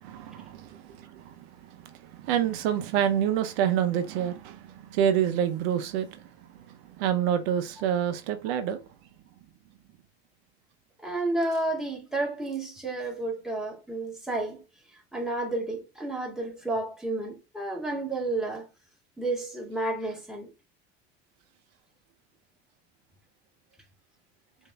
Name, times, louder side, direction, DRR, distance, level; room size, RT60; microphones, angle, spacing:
voice 1, 0.0-6.2 7.0-8.8, right 9 dB, 75° right, 0.7 m, -27 dB
voice 2, 11.0-14.6 14.9-18.7 19.2-20.5, right 2 dB, ahead, 1.9 m, -31 dB
6.5 x 2.7 x 2.3 m
supercardioid pair, 85°, 32 cm